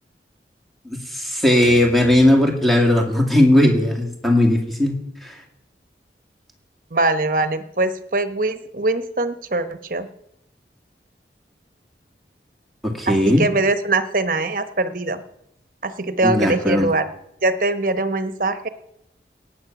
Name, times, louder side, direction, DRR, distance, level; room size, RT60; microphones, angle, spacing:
voice 1, 0.9-5.3 12.8-13.5 16.2-16.9, left 1 dB, ahead, 2 dB, 2.0 m, -17 dB
voice 2, 6.9-10.1 13.1-15.2 15.8-17.1 17.4-18.7, right 2 dB, 50° right, 10 dB, 1.0 m, -22 dB
18.0 x 8.9 x 6.0 m, 0.80 s
head